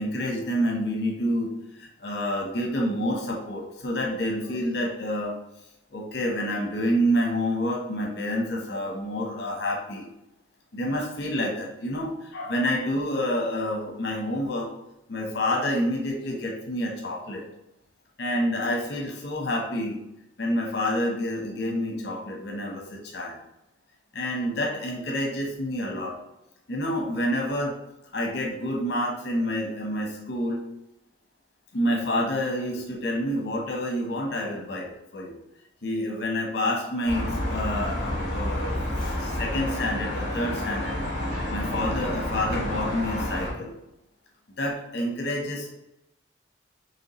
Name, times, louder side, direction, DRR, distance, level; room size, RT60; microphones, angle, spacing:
voice 1, 0.0-1.5 1.8-5.3 5.9-10.1 10.7-14.7 15.1-17.4 18.2-20.0 20.4-23.4 24.1-26.2 26.7-27.7 28.1-30.6 31.7-35.4 35.8-38.7 39.0-41.0 41.5-43.7 44.6-45.7, equal, 60° left, -1 dB, 0.9 m, -28 dB
sound 1, 37.1-43.5, left 1 dB, 70° right, 1.5 m, -29 dB
5.2 x 3.2 x 3.1 m, 0.88 s
head